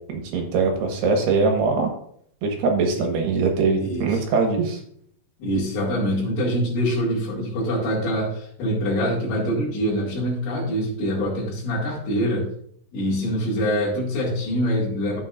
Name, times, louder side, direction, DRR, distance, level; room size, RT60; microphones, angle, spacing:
voice 1, 0.1-1.9 2.4-4.8, right 4 dB, 70° right, 2 dB, 3.3 m, -22 dB
voice 2, 3.8-4.2 5.4-12.5 12.9-15.2, equal, 90° left, -9 dB, 5.1 m, -24 dB
12.5 x 8.9 x 2.6 m, 0.64 s
omnidirectional pair, 5.4 m